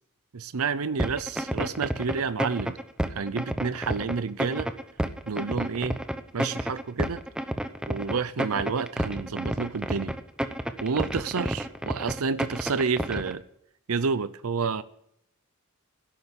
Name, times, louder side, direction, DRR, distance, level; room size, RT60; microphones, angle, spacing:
voice 1, 0.3-2.8 3.1-4.7 5.3-6.0 6.3-7.2 7.9-10.1 10.8-13.4 13.9-14.8, right 5 dB, 85° right, 0.7 m, -29 dB
sound 1, 1.0-13.3, equal, 5° right, 0.8 m, -30 dB
12.5 x 11.0 x 8.0 m
head